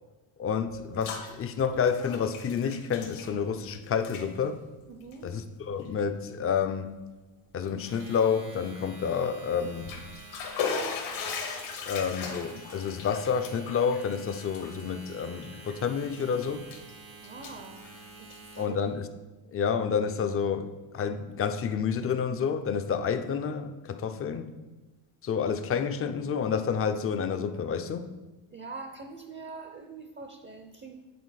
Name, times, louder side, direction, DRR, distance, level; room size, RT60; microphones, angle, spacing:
voice 1, 0.4-4.6 5.2-7.0 7.5-10.0 11.9-16.7 18.6-19.1 19.5-24.6 25.2-28.1, left 6 dB, 30° left, 8 dB, 0.5 m, -29 dB
Bathtub (filling or washing), 0.7-1.3 1.6-3.7 4.0-4.3 5.0-5.2 5.8-5.9 6.3-6.4 9.6-15.7 16.1-16.9 17.2-18.6, left 5 dB, 70° left, 1.4 m, -37 dB
voice 2, 4.9-5.3 17.2-17.9 18.2-18.7 28.5-31.2, right 3 dB, 25° right, 5 dB, 0.6 m, -44 dB
Domestic sounds home sounds, 7.7-18.8, right 3 dB, 80° right, 2.0 m, -49 dB
8.5 x 4.0 x 4.0 m, 1.1 s
cardioid pair, 90°, 48 cm